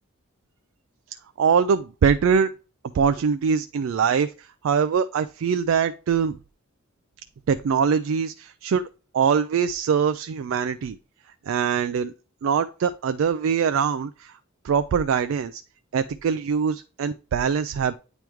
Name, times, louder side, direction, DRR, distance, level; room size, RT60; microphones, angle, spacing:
voice 1, 1.4-2.5 2.9-4.3 4.6-6.4 7.5-8.8 9.1-11.0 11.5-12.1 12.4-14.3 14.6-15.6 15.9-17.9, right 6 dB, 65° right, 10 dB, 0.3 m, -23 dB
9.0 x 3.1 x 3.5 m, 0.34 s
head